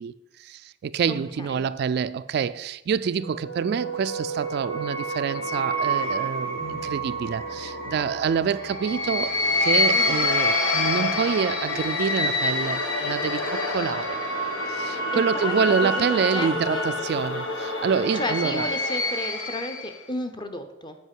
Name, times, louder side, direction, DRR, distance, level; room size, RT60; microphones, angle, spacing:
voice 1, 0.0-14.2 14.7-18.7, right 6 dB, 60° right, 0.3 m, -27 dB
voice 2, 1.1-1.7 9.9-10.3 15.1-16.9 18.1-21.0, left 1 dB, 25° left, 0.8 m, -33 dB
sound 1, 3.2-20.0, left 1 dB, 85° left, 1.5 m, -27 dB
sound 2, 6.6-9.9, left 2 dB, 45° left, 2.0 m, -49 dB
8.2 x 5.1 x 7.5 m
head